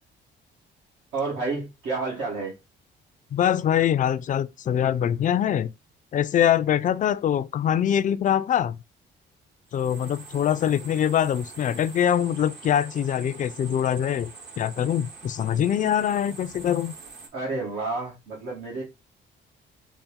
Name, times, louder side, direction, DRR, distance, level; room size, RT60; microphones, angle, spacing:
voice 1, 1.1-2.6 17.3-18.8, right 3 dB, 75° right, 1.4 m, -30 dB
voice 2, 3.3-5.7 6.1-8.8 9.7-14.3 14.6-16.9, left 9 dB, 40° left, 0.4 m, -23 dB
sound 1, 9.7-17.3, right 4 dB, 60° right, 1.3 m, -45 dB
4.1 x 2.1 x 3.6 m
cardioid pair, 90°, 20 cm